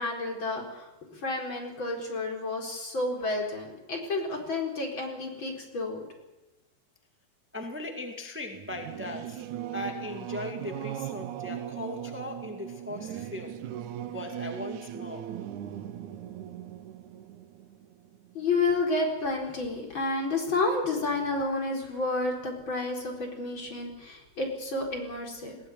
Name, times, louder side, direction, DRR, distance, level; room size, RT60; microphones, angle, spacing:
voice 1, 0.0-6.0 18.3-25.6, left 3 dB, 30° left, 1 dB, 4.8 m, -30 dB
voice 2, 7.5-9.4 9.7-13.6 14.1-15.2, left 1 dB, 15° right, 3 dB, 0.4 m, -38 dB
Singing / Musical instrument, 8.5-18.6, right 11 dB, 75° right, 1.8 m, -39 dB
20.5 x 16.5 x 9.9 m, 0.98 s
omnidirectional pair, 4.6 m